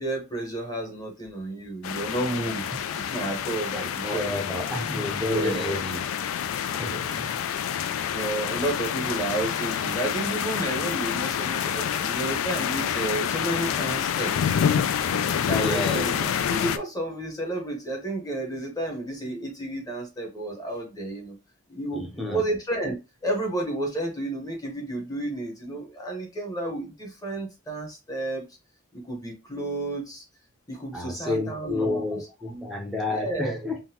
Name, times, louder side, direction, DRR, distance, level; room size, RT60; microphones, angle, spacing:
voice 1, 0.0-4.6 5.2-5.8 6.8-7.1 8.1-14.5 15.4-21.4 21.7-23.0 23.2-28.5 28.9-30.2 30.7-32.0 32.5-32.6 33.1-33.7, right 2 dB, 20° left, 1.0 m, -31 dB
sound 1, 1.8-16.8, left 8 dB, 80° left, 0.3 m, -28 dB
voice 2, 4.0-6.1 6.7-7.5 15.5-16.1 21.9-22.4 30.9-33.8, left 2 dB, ahead, 0.6 m, -30 dB
3.7 x 2.1 x 2.8 m
head